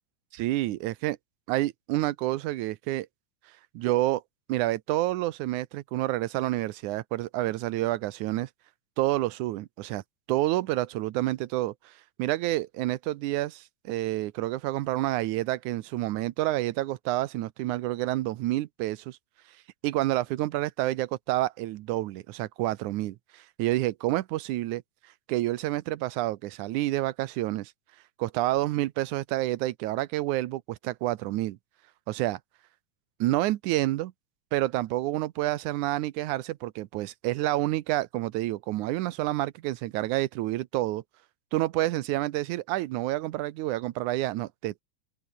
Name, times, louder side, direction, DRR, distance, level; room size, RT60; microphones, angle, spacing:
voice 1, 0.3-1.2 1.5-3.1 3.7-4.2 4.5-8.5 9.0-10.0 10.3-11.9 12.2-19.2 19.8-24.8 25.3-27.7 28.2-31.6 32.1-32.4 33.2-34.1 34.5-41.0 41.5-44.8, right 16 dB, 90° right, 2.3 m, -28 dB
open air
omnidirectional pair, 3.4 m